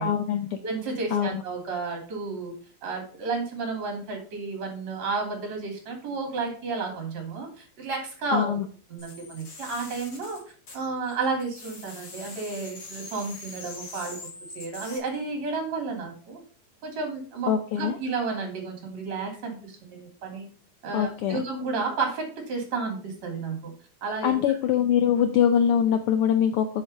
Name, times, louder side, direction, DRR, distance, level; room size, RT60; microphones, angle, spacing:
voice 1, 0.0-0.5 1.1-1.4 8.3-8.6 17.5-18.0 20.9-21.4 24.2-26.7, left 9 dB, 90° left, 7 dB, 1.2 m, -23 dB
voice 2, 0.6-2.5 2.8-8.6 8.9-10.4 10.7-16.4 16.8-20.5 20.8-23.7 24.0-24.3, right 4 dB, 65° right, 2 dB, 4.1 m, -32 dB
sound 1, 9.0-11.1 11.4-15.0, left 3 dB, 50° left, 3.4 m, -43 dB
7.7 x 6.4 x 5.3 m, 0.40 s
omnidirectional pair, 3.4 m